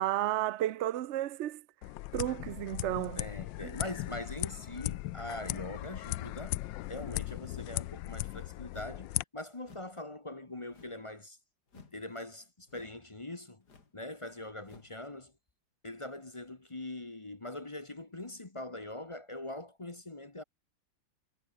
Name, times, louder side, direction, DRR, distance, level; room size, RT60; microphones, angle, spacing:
voice 1, 0.0-1.6 2.1-3.2 3.6-3.8, right 13 dB, 80° right, 0.6 m, -32 dB
sound 1, 1.8-9.2, left 16 dB, 80° left, 1.3 m, -38 dB
voice 2, 3.2-6.6 6.9-11.4 11.7-13.6 13.9-15.3 15.8-20.4, left 2 dB, 20° left, 1.0 m, -42 dB
sound 2, 8.7-9.1 9.6-10.0 10.7-11.1 11.7-12.0 12.7-13.1 13.6-14.0 14.6-15.0, left 4 dB, 55° left, 3.5 m, -58 dB
omnidirectional pair, 2.1 m